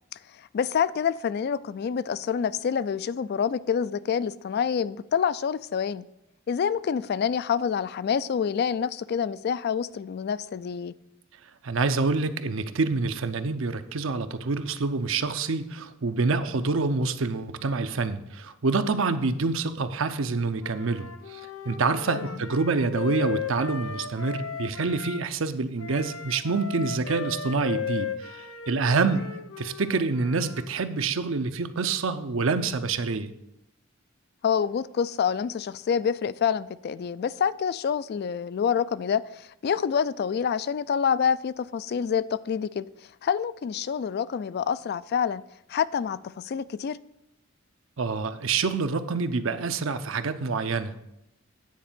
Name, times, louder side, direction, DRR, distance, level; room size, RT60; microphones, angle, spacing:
voice 1, 0.3-6.1 6.5-10.9 22.1-22.4 34.4-42.9 43.2-45.4 45.7-47.0, left 7 dB, 50° left, 0.3 m, -27 dB
voice 2, 11.6-21.4 21.7-29.3 29.6-33.3 48.0-51.0, right 4 dB, 70° right, 0.6 m, -27 dB
Wind instrument woodwind instrument, 20.6-25.2 25.8-30.7, left 7 dB, 75° left, 0.8 m, -36 dB
9.4 x 4.3 x 7.4 m
head